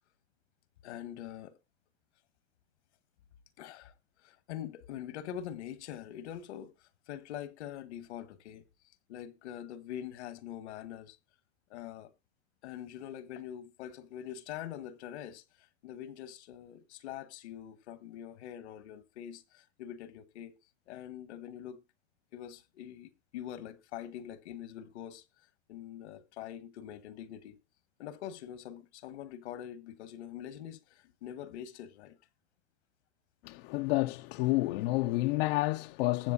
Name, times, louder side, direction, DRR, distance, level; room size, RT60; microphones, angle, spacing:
voice 1, 0.8-1.6 3.6-8.6 9.1-11.2 11.7-12.1 12.6-20.5 20.9-21.8 22.3-25.2 25.7-27.6 28.0-32.2, left 10 dB, 75° left, 1.4 m, -44 dB
voice 2, 33.4-36.3, left 20 dB, 55° left, 0.6 m, -29 dB
20.5 x 7.6 x 2.5 m
supercardioid pair, 125°, 34 cm